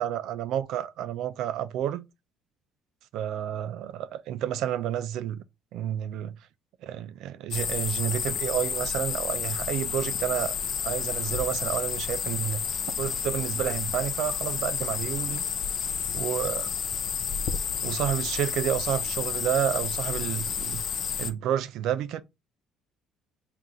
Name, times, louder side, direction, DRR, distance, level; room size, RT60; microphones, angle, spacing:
voice 1, 0.0-2.1 3.1-5.4 5.7-6.4 6.8-10.5 10.8-12.7 13.0-15.4 16.1-16.7 17.8-20.8 21.2-22.2, right 11 dB, 70° right, 0.4 m, -30 dB
sound 1, 7.5-21.3, left 7 dB, 45° left, 0.5 m, -31 dB
4.3 x 2.5 x 3.7 m
cardioid pair, 140°, 0 cm